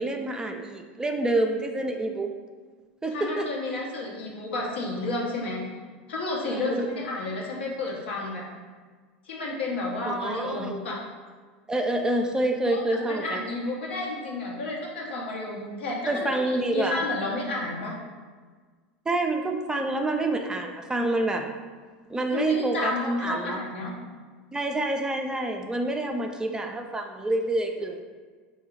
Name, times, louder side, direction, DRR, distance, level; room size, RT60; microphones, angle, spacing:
voice 1, 0.0-2.3 3.0-3.5 6.4-6.9 10.0-10.7 11.7-13.4 16.1-17.1 19.1-21.5 22.1-23.6 24.5-28.0, right 2 dB, 10° right, 4 dB, 0.3 m, -27 dB
voice 2, 3.1-5.6 6.1-8.4 9.2-11.0 12.7-17.9 22.3-23.9 26.1-26.2, left 2 dB, 80° left, -3 dB, 0.9 m, -31 dB
3.6 x 2.2 x 3.5 m, 1.5 s
hypercardioid pair, 90°, 6 cm